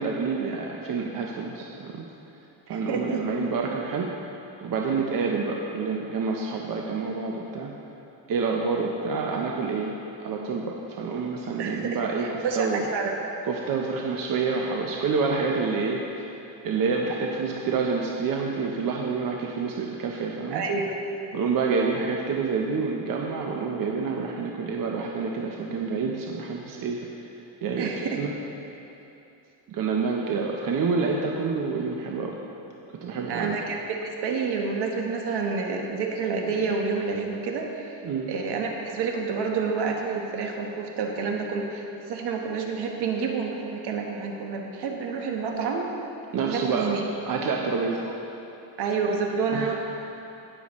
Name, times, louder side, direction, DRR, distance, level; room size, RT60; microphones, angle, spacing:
voice 1, 0.0-2.1 2.7-4.1 4.6-7.7 8.3-9.9 10.2-12.8 13.5-16.3 16.6-20.6 21.3-27.0 27.6-28.3 29.7-32.4 33.0-33.5 38.0-38.3 46.3-46.9 47.3-48.1 49.5-49.7, right 4 dB, 50° right, -1 dB, 0.9 m, -28 dB
voice 2, 2.7-3.3 11.6-13.1 20.5-21.0 27.8-28.3 33.2-38.0 38.3-45.9 46.4-47.0 48.8-49.7, right 5 dB, 65° right, 1 dB, 1.4 m, -29 dB
18.5 x 7.0 x 3.1 m, 2.8 s
cardioid pair, 125°, 43 cm